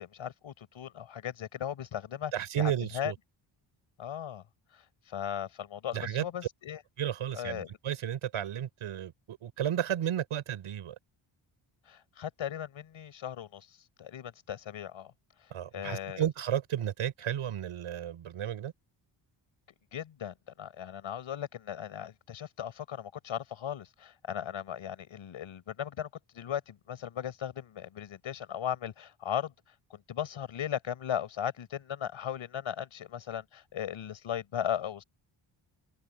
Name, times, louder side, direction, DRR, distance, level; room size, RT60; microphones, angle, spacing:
voice 1, 0.0-3.1 4.0-4.4 4.7-6.8 7.3-7.7 11.9-15.1 15.7-16.3 19.9-26.1 26.3-35.0, left 9 dB, 70° left, 5.9 m, -37 dB
voice 2, 2.3-3.1 5.9-6.2 7.0-10.9 15.5-18.7, right 10 dB, 80° right, 4.9 m, -33 dB
wide cardioid pair, 150°, 49 cm